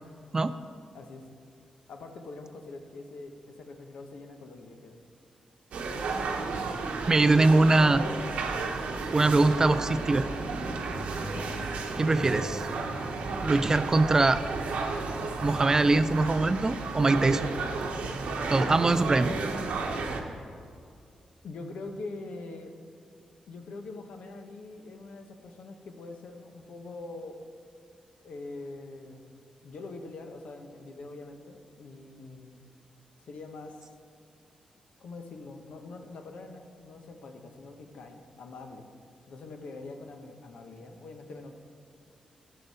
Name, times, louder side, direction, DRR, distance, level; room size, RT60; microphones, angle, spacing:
voice 1, 0.9-1.3 1.9-5.0 21.4-22.7 23.5-27.4 28.2-29.3 29.6-32.6 33.3-33.9 35.0-38.9 39.3-41.5, left 3 dB, 75° left, 4 dB, 1.0 m, -43 dB
sound 1, 5.7-20.2, right 3 dB, 90° right, 1.0 m, -33 dB
voice 2, 7.1-8.1 9.1-10.3 12.0-12.7 13.4-14.4 15.4-17.5 18.5-19.3, right 2 dB, 25° right, 12 dB, 0.4 m, -22 dB
14.0 x 6.7 x 4.2 m, 2.3 s
cardioid pair, 115°, 2 cm